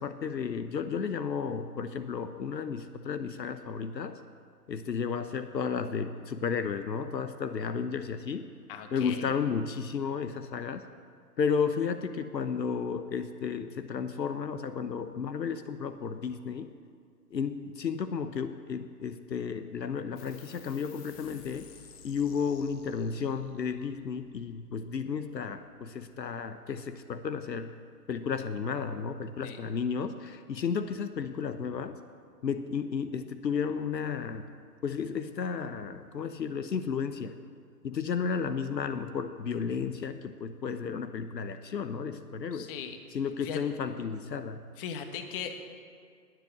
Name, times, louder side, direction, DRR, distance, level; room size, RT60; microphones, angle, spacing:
voice 1, 0.0-4.2 4.7-8.5 8.9-10.8 11.4-16.7 17.3-21.7 22.0-27.7 28.1-32.0 32.4-34.5 34.8-37.3 37.8-42.7 43.1-44.6, left 6 dB, 80° left, 10 dB, 1.0 m, -33 dB
voice 2, 8.7-9.3 29.4-29.6 42.5-43.0 43.4-43.6 44.8-45.6, left 7 dB, 35° left, 7 dB, 1.4 m, -38 dB
sound 1, 20.2-27.1, left 5 dB, 15° left, 1.0 m, -56 dB
20.0 x 7.8 x 6.6 m, 2.2 s
figure-of-eight pair, 130°, 50 cm